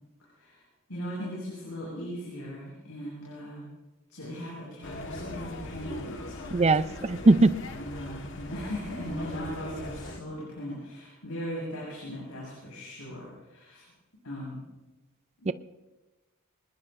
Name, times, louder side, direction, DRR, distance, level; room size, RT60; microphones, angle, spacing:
voice 1, 0.9-3.7 4.1-6.6 7.7-13.8 14.2-14.6 15.4-15.5, equal, 85° left, -5 dB, 6.8 m, -38 dB
sound 1, 4.8-10.2, left 2 dB, 60° left, 1.6 m, -40 dB
voice 2, 6.5-7.5 15.5-15.6, right 3 dB, 30° right, 13 dB, 0.5 m, -20 dB
25.5 x 20.5 x 2.7 m, 1.1 s
head